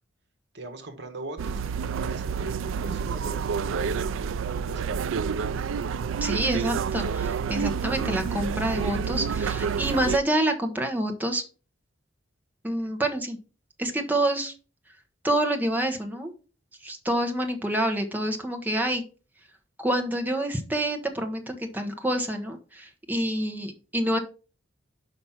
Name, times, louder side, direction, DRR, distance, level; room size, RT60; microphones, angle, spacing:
voice 1, 0.5-1.6 2.0-4.1 4.7-5.6, right 2 dB, 55° right, 7 dB, 1.3 m, -41 dB
sound 1, 1.4-10.2, right 6 dB, 75° right, 0.4 m, -29 dB
voice 2, 6.2-11.4 12.6-13.4 13.8-14.5 15.2-16.3 16.8-19.0 19.8-24.2, right 1 dB, 10° right, 4 dB, 0.9 m, -27 dB
5.7 x 5.2 x 5.8 m, 0.35 s
head